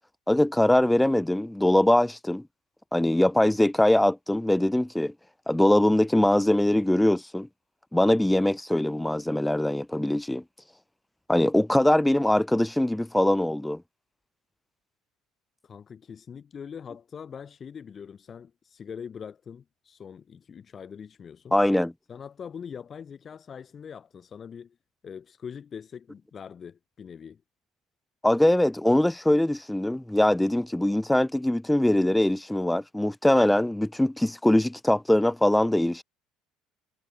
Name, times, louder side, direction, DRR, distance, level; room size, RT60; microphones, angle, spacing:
voice 1, 0.3-2.4 2.9-5.1 5.5-7.5 7.9-10.4 11.3-13.8 21.5-21.9 28.2-36.0, left 1 dB, 5° left, 0.8 m, -22 dB
voice 2, 15.6-21.6 22.1-24.8 25.0-27.4, left 7 dB, 35° left, 5.0 m, -42 dB
figure-of-eight pair, 60°, 0 cm